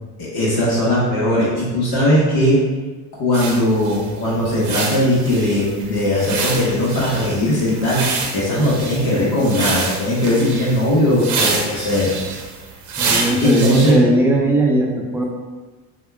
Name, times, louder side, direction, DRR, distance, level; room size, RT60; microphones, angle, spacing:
voice 1, 0.2-2.6 3.1-12.1 13.4-14.0, left 1 dB, 55° left, -7 dB, 1.2 m, -18 dB
sound 1, 3.3-13.9, right 4 dB, 40° right, 0.7 m, -27 dB
voice 2, 13.0-15.2, right 1 dB, 5° right, -2 dB, 0.5 m, -18 dB
4.9 x 2.4 x 2.3 m, 1.3 s
hypercardioid pair, 70°, 46 cm